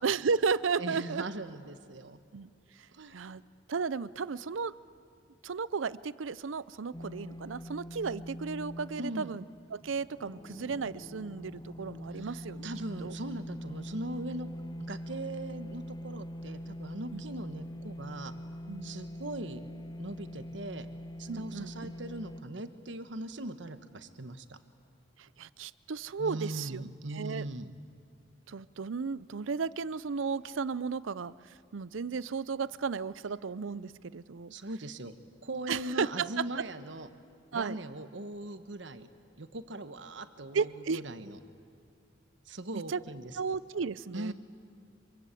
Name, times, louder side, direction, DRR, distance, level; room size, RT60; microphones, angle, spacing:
voice 1, 0.0-1.2 2.3-2.5 3.1-3.4 3.7-4.7 5.4-9.4 9.7-12.7 13.0-13.1 17.1-17.2 18.7-19.0 21.3-21.9 25.4-27.5 28.5-31.3 31.7-34.5 35.7-36.3 37.5-37.8 40.5-41.0 42.7-43.0 43.4-44.3, right 5 dB, 90° right, 18 dB, 0.6 m, -34 dB
voice 2, 0.8-2.2 2.9-3.3 9.0-9.3 12.1-14.5 14.9-18.3 18.8-19.6 20.0-20.9 21.2-24.6 26.2-27.7 34.5-35.1 35.4-37.1 37.5-39.1 39.4-41.4 42.5-43.4 44.1-44.3, right 1 dB, 70° right, 10 dB, 1.3 m, -40 dB
sound 1, 6.9-22.4, equal, 20° left, 0.6 m, -43 dB
25.5 x 23.5 x 8.4 m, 2.3 s
head